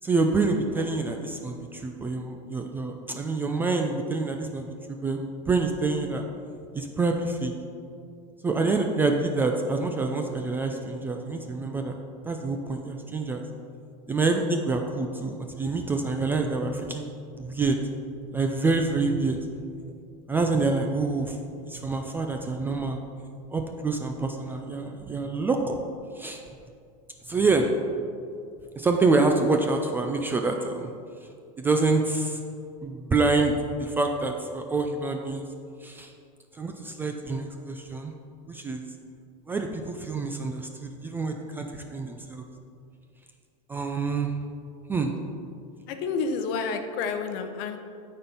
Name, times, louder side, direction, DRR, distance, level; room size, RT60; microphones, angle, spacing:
voice 1, 0.0-4.7 5.0-6.2 6.7-7.5 8.4-12.0 12.3-13.4 14.1-17.1 17.4-17.8 18.3-19.5 20.3-21.4 21.7-23.0 23.5-25.8 26.2-26.4 27.3-27.7 28.8-30.9 31.6-32.4 32.8-35.4 35.8-36.1 36.6-38.1 38.5-38.8 39.5-42.4 43.7-44.3 44.9-45.1, right 3 dB, 10° right, 3 dB, 0.3 m, -26 dB
voice 2, 45.9-47.8, left 5 dB, 55° left, 6 dB, 0.9 m, -29 dB
12.0 x 4.3 x 5.5 m, 2.4 s
supercardioid pair, 160°, 18 cm